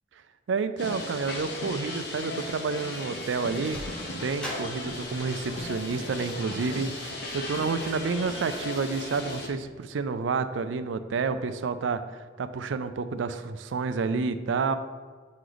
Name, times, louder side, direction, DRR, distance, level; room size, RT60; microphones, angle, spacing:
voice 1, 0.5-14.8, right 4 dB, 85° right, 11 dB, 0.4 m, -30 dB
sound 1, 0.8-9.5, left 2 dB, 60° left, 0.9 m, -36 dB
Sliding door, 3.4-9.7, equal, 5° left, 0.8 m, -45 dB
7.9 x 3.2 x 3.9 m, 1.5 s
head